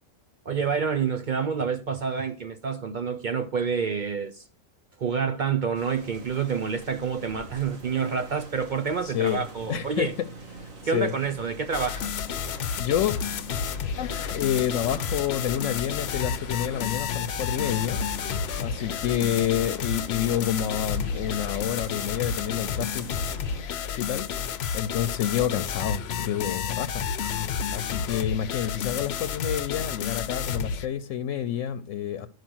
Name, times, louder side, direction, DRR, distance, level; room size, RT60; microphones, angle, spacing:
voice 1, 0.5-4.4 5.0-10.1 10.8-12.1, right 6 dB, 55° right, 0.5 m, -28 dB
sound 1, 5.7-23.6, right 3 dB, 80° right, 2.2 m, -43 dB
voice 2, 9.0-9.4 9.7-10.3 10.6-11.1 12.8-13.1 14.0-18.0 18.6-23.1 24.0-27.1 27.7-32.3, left 10 dB, 75° left, 1.0 m, -28 dB
sound 2, 11.7-30.9, left 7 dB, 60° left, 0.8 m, -31 dB
11.5 x 4.9 x 6.1 m
omnidirectional pair, 1.4 m